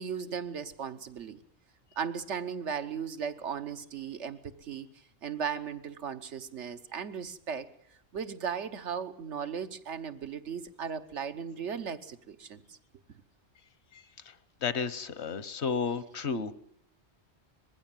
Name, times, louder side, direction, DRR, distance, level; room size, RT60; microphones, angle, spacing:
voice 1, 0.0-1.4 2.0-4.9 5.2-7.7 8.1-12.8, right 7 dB, 85° right, 9 dB, 1.4 m, -36 dB
voice 2, 14.6-16.5, left 5 dB, 70° left, 15 dB, 1.3 m, -32 dB
21.0 x 15.5 x 9.0 m, 0.74 s
omnidirectional pair, 1.2 m